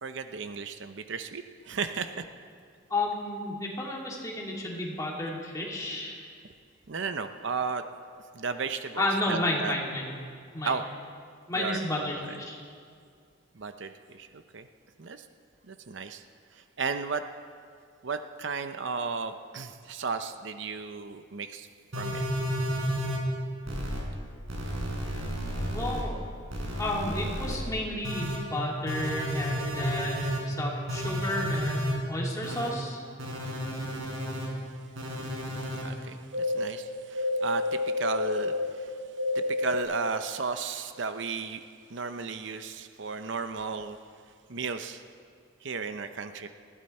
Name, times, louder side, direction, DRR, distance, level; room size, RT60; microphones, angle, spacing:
voice 1, 0.0-2.3 6.9-7.8 8.3-9.8 10.6-10.8 11.5-11.8 12.1-12.3 13.5-14.7 15.0-15.3 15.7-16.2 16.5-17.2 18.0-21.7 22.0-22.2 35.8-38.9 39.3-41.6 41.9-44.0 44.5-45.0 45.6-46.5, right 5 dB, 60° right, 9 dB, 0.7 m, -34 dB
voice 2, 2.9-6.3 9.0-10.1 10.5-10.7 11.5-12.5 25.7-26.1 26.8-33.0, left 1 dB, 15° left, -3 dB, 2.6 m, -32 dB
sound 1, 21.9-23.2 23.7-24.0 24.5-26.0 26.5-27.6 28.0-28.4 28.9-30.4 30.9-31.9 32.4-32.7 33.2-34.5 35.0-35.8 36.3-36.6 37.1-38.7 39.2-39.8, left 1 dB, 80° right, 4.2 m, -31 dB
20.0 x 15.5 x 4.3 m, 2.2 s
head